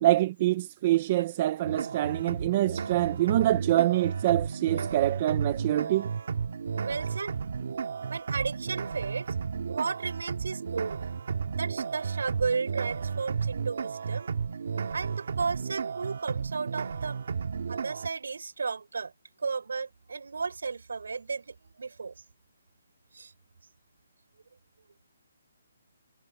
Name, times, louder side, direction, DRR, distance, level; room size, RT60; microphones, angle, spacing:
voice 1, 0.0-6.1, right 15 dB, 25° right, 0.6 m, -25 dB
sound 1, 1.6-18.1, right 6 dB, 50° right, 2.5 m, -33 dB
voice 2, 6.8-7.3 8.1-9.3 9.7-11.0 11.5-14.3 14.9-17.2 17.7-19.1 19.4-22.1 23.1-23.3, right 4 dB, 75° right, 6.6 m, -34 dB
hypercardioid pair, 175°, 0 cm